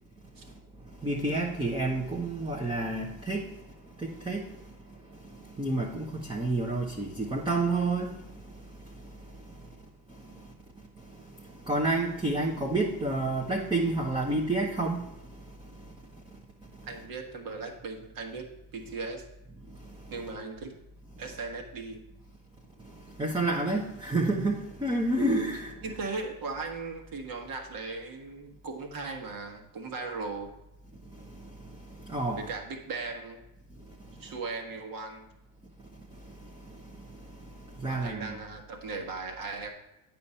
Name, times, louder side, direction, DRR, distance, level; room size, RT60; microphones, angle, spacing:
voice 1, 1.0-3.4 4.0-4.4 5.6-8.1 11.7-15.0 23.2-25.7 32.1-32.4 37.8-38.4, right 2 dB, 10° right, -2 dB, 1.0 m, -29 dB
voice 2, 16.9-18.5 18.7-19.2 20.1-20.7 21.2-22.0 25.8-30.5 32.3-33.4 34.2-35.3 37.9-39.7, right 3 dB, 45° right, 4 dB, 1.6 m, -37 dB
8.5 x 5.6 x 4.2 m, 0.90 s
supercardioid pair, 85°, 46 cm